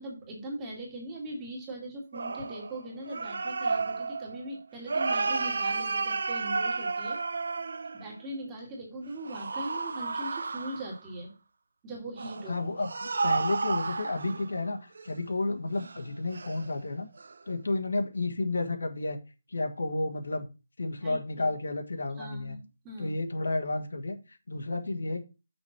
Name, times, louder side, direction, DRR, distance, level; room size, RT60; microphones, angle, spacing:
voice 1, 0.0-7.2 7.9-11.3 11.8-12.6 21.0-21.5 22.2-23.1, right 1 dB, 10° right, -1 dB, 1.6 m, -40 dB
sound 1, 2.1-8.2 9.3-11.1 12.2-14.6 15.0-15.1 15.8-16.0 16.3-16.7 17.2-17.3, right 4 dB, 55° right, 0.5 m, -32 dB
voice 2, 12.5-17.1 17.5-19.2 19.5-20.5 20.8-22.6 23.0-24.2 24.5-25.2, left 2 dB, 85° left, 5 dB, 1.5 m, -31 dB
6.0 x 5.0 x 5.8 m, 0.30 s
hypercardioid pair, 180°, 0 cm